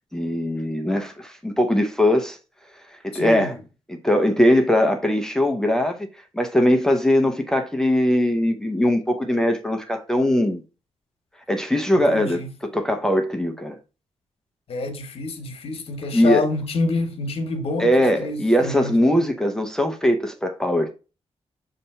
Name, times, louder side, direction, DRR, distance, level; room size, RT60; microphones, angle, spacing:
voice 1, 0.1-2.4 2.9-3.5 3.9-6.1 6.3-10.6 11.5-13.8 16.1-16.4 17.8-20.9, left 1 dB, 5° left, 0.6 m, -21 dB
voice 2, 3.1-3.6 11.9-12.5 14.7-19.2, left 3 dB, 60° left, 1.1 m, -28 dB
6.6 x 2.8 x 5.4 m
wide cardioid pair, 150°, 11 cm